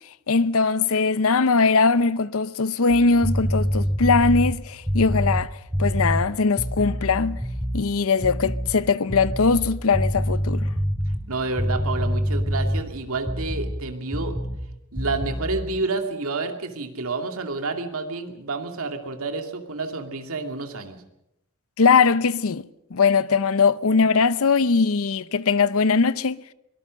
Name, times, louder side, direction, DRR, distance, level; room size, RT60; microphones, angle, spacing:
voice 1, 0.3-5.5 5.8-7.4 7.7-10.7 21.8-22.6 22.9-26.4, left 4 dB, 70° left, 0.7 m, -20 dB
sound 1, 2.9-7.9 8.2-8.8 9.1-13.8 14.1-14.7 15.0-15.6, equal, 5° right, 1.0 m, -26 dB
voice 2, 11.1-14.4 14.9-21.0, right 3 dB, 70° right, 2.4 m, -29 dB
23.5 x 19.0 x 6.4 m
head